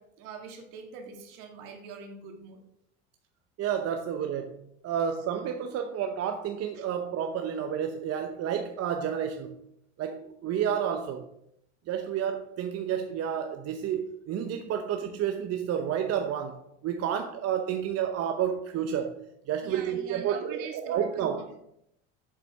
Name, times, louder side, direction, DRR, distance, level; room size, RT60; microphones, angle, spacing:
voice 1, 0.0-2.6 6.8-6.9 19.6-21.5, right 5 dB, 65° right, 2.2 m, -44 dB
voice 2, 3.6-4.6 4.8-9.6 10.0-11.3 11.9-21.5, right 8 dB, 45° right, 0.9 m, -30 dB
7.6 x 6.9 x 5.2 m
hypercardioid pair, 85°, 34 cm